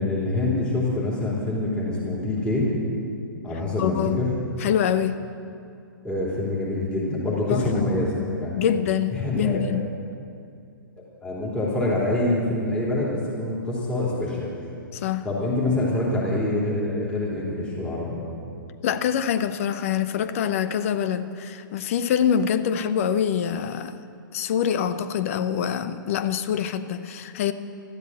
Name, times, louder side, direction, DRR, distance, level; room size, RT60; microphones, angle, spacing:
voice 1, 0.0-2.7 3.4-4.3 6.0-8.7 9.1-9.7 11.2-14.5 15.2-18.2, left 2 dB, 10° left, -7 dB, 3.5 m, -25 dB
voice 2, 3.8-4.2 4.6-5.2 7.5-7.8 8.5-9.9 14.9-15.3 18.8-24.0 24.3-27.5, left 8 dB, 40° left, 12 dB, 0.7 m, -25 dB
13.0 x 12.5 x 7.5 m, 2.4 s
figure-of-eight pair, 120°, 11 cm